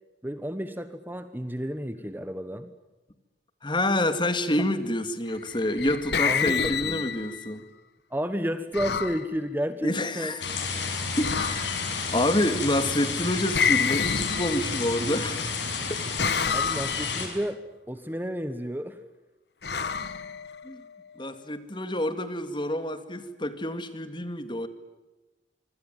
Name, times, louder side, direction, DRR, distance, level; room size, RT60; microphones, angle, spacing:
voice 1, 0.2-2.7 6.2-7.0 8.1-10.3 16.5-17.6 17.9-19.0, equal, 10° right, 1.2 m, -31 dB
voice 2, 3.6-7.7 9.8-10.4 11.2-11.8 12.1-15.4 15.9-16.0 20.6-20.8 21.2-24.7, left 1 dB, 25° left, 2.1 m, -28 dB
sound 1, 5.5-7.5 8.7-9.2 11.2-11.9 13.5-15.0 16.2-17.2 19.6-20.8, left 6 dB, 65° left, 1.4 m, -28 dB
sound 2, 10.4-17.3, left 4 dB, 85° left, 6.3 m, -31 dB
25.5 x 25.0 x 9.3 m
head